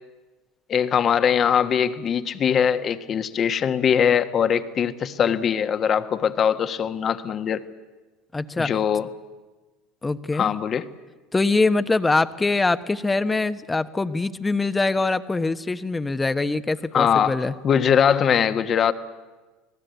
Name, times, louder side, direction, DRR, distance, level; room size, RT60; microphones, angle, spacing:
voice 1, 0.7-7.6 8.6-9.1 10.3-10.9 16.9-17.3 17.6-18.9, left 8 dB, 40° left, 10 dB, 1.4 m, -21 dB
voice 2, 8.3-8.7 10.0-10.5 11.3-17.5, left 3 dB, 15° left, 11 dB, 1.2 m, -23 dB
29.5 x 19.5 x 8.3 m, 1.2 s
hypercardioid pair, 75°, 0 cm